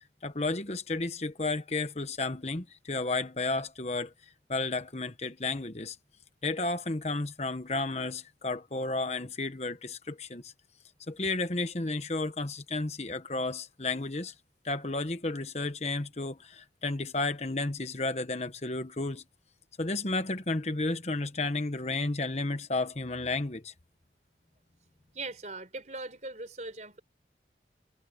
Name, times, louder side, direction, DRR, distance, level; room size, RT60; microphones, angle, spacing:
voice 1, 0.2-4.1 4.5-6.0 6.4-10.5 11.1-14.3 14.6-19.2 19.8-23.7, left 3 dB, 35° left, 1.2 m, -32 dB
voice 2, 25.1-27.0, right 3 dB, 40° right, 4.6 m, -40 dB
head